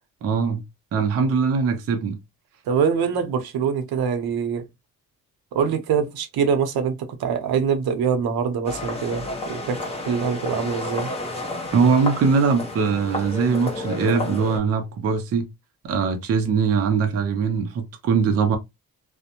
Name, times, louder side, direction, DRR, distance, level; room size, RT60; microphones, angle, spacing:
voice 1, 0.2-0.6 0.9-2.2 11.7-15.5 15.8-18.6, right 5 dB, 45° right, 0.4 m, -21 dB
voice 2, 2.7-4.7 5.5-11.1, right 6 dB, 80° right, 0.7 m, -24 dB
sound 1, 8.6-14.6, left 2 dB, 15° left, 0.6 m, -31 dB
2.5 x 2.0 x 2.8 m
wide cardioid pair, 175°, 37 cm